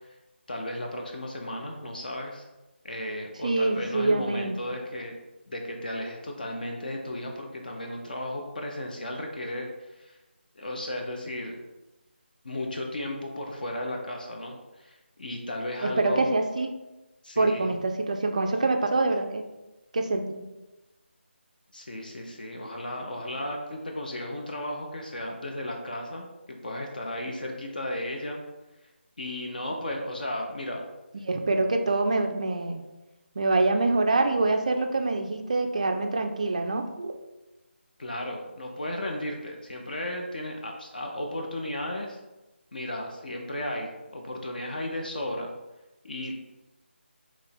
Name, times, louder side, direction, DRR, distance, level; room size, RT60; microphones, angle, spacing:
voice 1, 0.5-2.4 2.8-5.1 5.5-9.7 10.0-10.2 10.6-11.6 12.4-16.3 17.2-17.7 21.7-28.4 29.2-30.8 38.0-42.2 42.7-45.5 46.0-46.3, left 1 dB, 45° left, 1 dB, 0.5 m, -34 dB
voice 2, 3.4-4.6 15.8-16.7 17.4-19.4 19.9-20.4 31.2-32.8 33.4-37.1, right 2 dB, 35° right, 5 dB, 0.3 m, -25 dB
2.9 x 2.6 x 4.2 m, 1.0 s
figure-of-eight pair, 155°, 6 cm